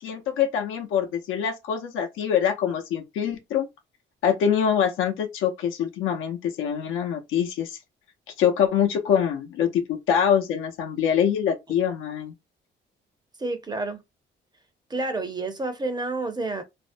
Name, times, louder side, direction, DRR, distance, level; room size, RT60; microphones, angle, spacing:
voice 1, 0.0-3.7 4.2-7.8 8.4-12.3, left 8 dB, 90° left, 0.7 m, -24 dB
voice 2, 13.4-14.0 14.9-16.6, right 2 dB, 20° right, 0.6 m, -29 dB
2.5 x 2.0 x 2.5 m
cardioid pair, 90°, 20 cm